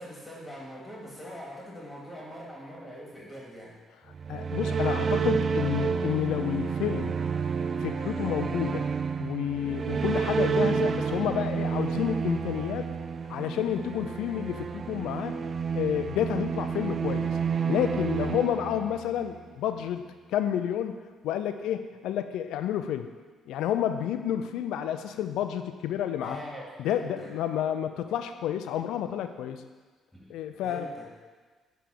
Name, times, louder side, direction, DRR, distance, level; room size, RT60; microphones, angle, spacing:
voice 1, 0.0-3.7 26.2-27.3 30.1-30.3 30.6-31.1, equal, 15° left, -4 dB, 2.3 m, -42 dB
sound 1, 4.1-19.3, right 6 dB, 45° right, 0.4 m, -30 dB
voice 2, 4.3-7.2 7.8-8.9 9.2-12.9 13.3-15.4 15.7-17.4 17.7-21.0 21.2-23.1 23.5-26.4 26.8-29.6 30.3-30.9, left 10 dB, 75° left, 9 dB, 0.5 m, -30 dB
9.2 x 3.5 x 6.5 m, 1.4 s
hypercardioid pair, 55°, 0 cm